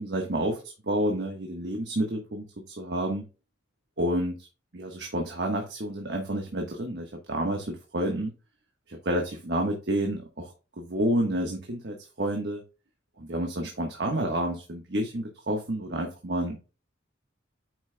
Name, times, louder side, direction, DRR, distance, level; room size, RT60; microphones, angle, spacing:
voice 1, 0.0-3.2 4.0-4.5 4.7-8.3 8.9-12.6 13.2-16.6, right 1 dB, 65° right, 2 dB, 1.3 m, -29 dB
8.9 x 6.1 x 2.2 m, 0.32 s
head